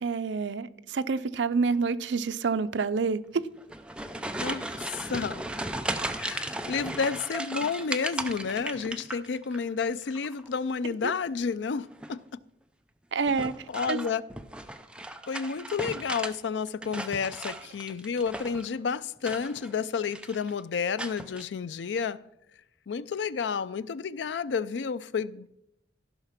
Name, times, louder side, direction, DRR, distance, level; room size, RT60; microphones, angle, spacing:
voice 1, 0.0-3.4 11.0-11.1 13.1-13.5 13.9-14.0, right 4 dB, 90° right, 0.5 m, -28 dB
sound 1, 3.6-9.6 9.9-10.5 11.9-12.3 13.3-16.4 16.7-18.7 19.2-19.8 20.0-20.5 21.0-21.4, right 1 dB, 5° right, 0.5 m, -36 dB
voice 2, 4.4-5.4 6.2-12.2 13.7-14.2 15.3-22.3 22.9-25.5, left 5 dB, 85° left, 0.4 m, -31 dB
14.5 x 5.8 x 5.8 m
head